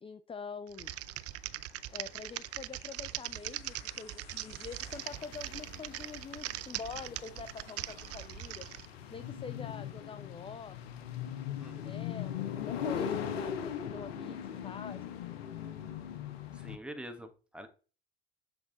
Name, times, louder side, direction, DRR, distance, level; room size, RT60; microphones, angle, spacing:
voice 1, 0.0-0.9 1.9-8.6 9.1-10.8 11.5-15.2, left 5 dB, 20° left, 12 dB, 0.5 m, -45 dB
Typing, 0.7-8.9, right 16 dB, 55° right, 0.4 m, -41 dB
sound 1, 0.9-16.8, left 8 dB, 90° left, 0.7 m, -41 dB
sound 2, 1.9-5.4 6.0-6.1, left 5 dB, 60° left, 3.4 m, -59 dB
voice 2, 11.6-12.0 16.5-17.7, equal, 5° right, 6 dB, 1.3 m, -45 dB
7.2 x 3.5 x 3.9 m, 0.37 s
hypercardioid pair, 60°, 30 cm